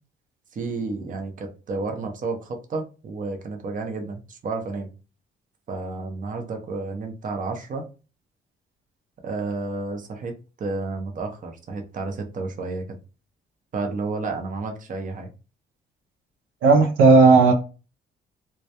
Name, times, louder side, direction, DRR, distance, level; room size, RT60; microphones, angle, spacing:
voice 1, 0.5-4.9 5.7-7.8 9.2-10.3 10.6-13.0 13.7-15.3, right 3 dB, 40° right, 0.6 m, -31 dB
voice 2, 16.6-17.5, right 3 dB, 85° right, 0.5 m, -13 dB
2.2 x 2.1 x 2.7 m
cardioid pair, 90°, 20 cm